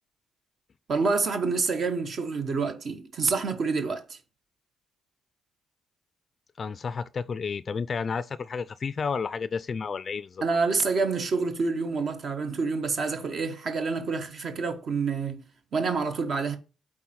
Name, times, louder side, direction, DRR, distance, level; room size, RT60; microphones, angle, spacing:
voice 1, 0.9-4.2 10.4-15.4 15.7-16.6, right 4 dB, 55° right, 1.0 m, -27 dB
voice 2, 6.6-10.4, left 5 dB, 45° left, 0.3 m, -31 dB
8.4 x 3.8 x 4.3 m
cardioid pair, 90°, 0 cm